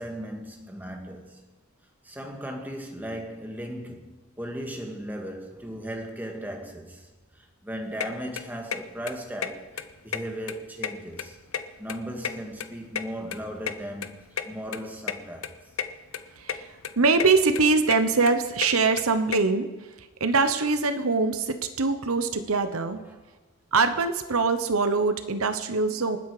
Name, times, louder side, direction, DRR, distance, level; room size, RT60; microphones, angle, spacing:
voice 1, 0.0-1.5 2.0-7.1 7.3-11.4 11.8-15.5 23.1-23.2, equal, 10° right, 2.0 m, -37 dB
sound 1, 8.0-8.1 8.4-8.8 9.1-9.2 9.4-9.5 9.8-10.5 10.8-12.0 12.2-13.7 14.0-14.1 14.4-14.5 14.7-14.8 15.1-15.2 15.4-15.9 16.1-16.6 16.8-17.3 17.6-19.4, left 7 dB, 70° left, 0.9 m, -31 dB
voice 2, 16.4-19.7 20.0-23.0 23.7-26.2, right 4 dB, 80° right, 1.1 m, -23 dB
27.5 x 9.7 x 5.0 m
head